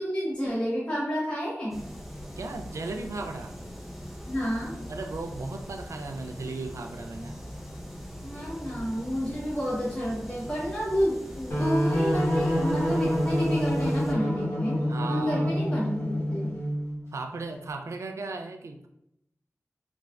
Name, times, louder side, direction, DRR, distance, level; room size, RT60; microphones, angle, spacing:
voice 1, 0.0-1.8 4.3-4.8 8.2-14.8 15.1-16.5, equal, 20° left, -7 dB, 1.1 m, -30 dB
sound 1, 1.7-14.1, equal, 5° right, 0.5 m, -41 dB
voice 2, 2.4-3.5 4.9-7.4 14.9-15.5 17.1-18.9, right 3 dB, 70° right, 5 dB, 0.3 m, -36 dB
sound 2, 11.5-17.0, equal, 55° left, 0.9 m, -27 dB
3.1 x 2.4 x 2.2 m, 0.79 s
wide cardioid pair, 75°, 5 cm